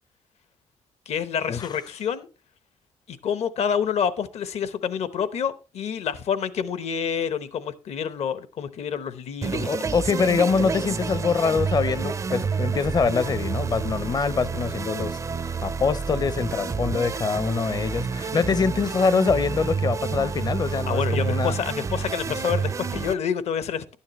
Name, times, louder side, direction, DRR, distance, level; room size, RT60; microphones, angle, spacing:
voice 1, 1.1-2.3 3.1-9.8 20.9-24.0, left 7 dB, 70° left, 0.9 m, -28 dB
sound 1, 9.4-23.1, right 5 dB, 30° right, 0.4 m, -29 dB
voice 2, 9.7-15.2 15.6-21.6 22.3-22.4, left 5 dB, 35° left, 0.6 m, -24 dB
11.5 x 9.7 x 3.0 m
cardioid pair, 85°, 11 cm